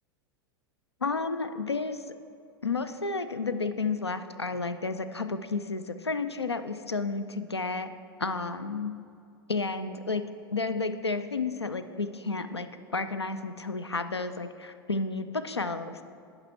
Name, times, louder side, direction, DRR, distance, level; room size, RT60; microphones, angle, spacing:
voice 1, 1.0-2.0 2.6-7.9 8.2-8.9 9.5-10.2 10.5-12.7 12.9-16.0, left 3 dB, 85° left, 10 dB, 0.4 m, -31 dB
10.5 x 5.4 x 4.5 m, 2.4 s
figure-of-eight pair, 90°, 13 cm